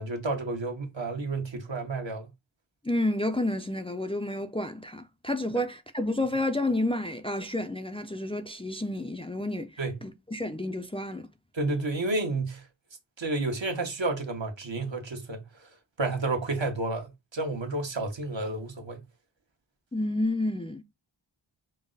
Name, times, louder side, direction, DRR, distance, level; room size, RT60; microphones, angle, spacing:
voice 1, 0.0-2.3 9.8-9.9 11.5-12.7 13.2-15.7 16.0-19.0, right 2 dB, 70° right, 1.3 m, -31 dB
voice 2, 2.8-9.7 10.0-11.3 19.9-20.8, left 1 dB, 10° left, 0.5 m, -30 dB
5.3 x 2.1 x 3.8 m
wide cardioid pair, 50°, 46 cm